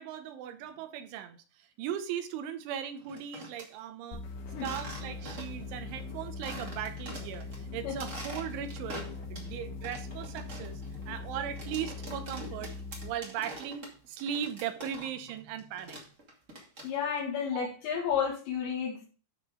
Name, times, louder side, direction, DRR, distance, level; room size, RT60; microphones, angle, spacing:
voice 1, 0.0-1.4 1.8-4.2 4.6-12.7 13.0-16.0, right 9 dB, 80° right, 9 dB, 3.4 m, -38 dB
sound 1, 3.0-3.7 4.6-5.7 6.0-6.1 6.4-7.6 7.9-9.5 9.8-15.3 15.6-17.2, right 1 dB, 30° right, 1.3 m, -45 dB
sound 2, 4.1-13.2, left 3 dB, 90° left, 4.0 m, -41 dB
voice 2, 16.8-19.1, left 7 dB, 70° left, -2 dB, 3.8 m, -31 dB
12.0 x 4.4 x 5.0 m, 0.35 s
omnidirectional pair, 5.5 m